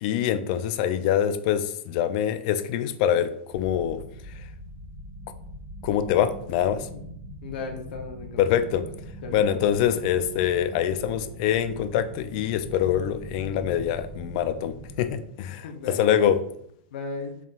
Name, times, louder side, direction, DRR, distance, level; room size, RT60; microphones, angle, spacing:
voice 1, 0.0-4.0 5.8-6.9 8.4-8.8 9.3-16.4, left 10 dB, 45° left, 11 dB, 0.3 m, -24 dB
sound 1, 3.5-15.2, equal, 20° right, 1.0 m, -42 dB
voice 2, 7.4-8.8 9.2-9.6 15.6-16.1 16.9-17.4, left 4 dB, 65° left, 3 dB, 0.9 m, -36 dB
4.3 x 3.6 x 2.4 m, 0.70 s
supercardioid pair, 145°, 6 cm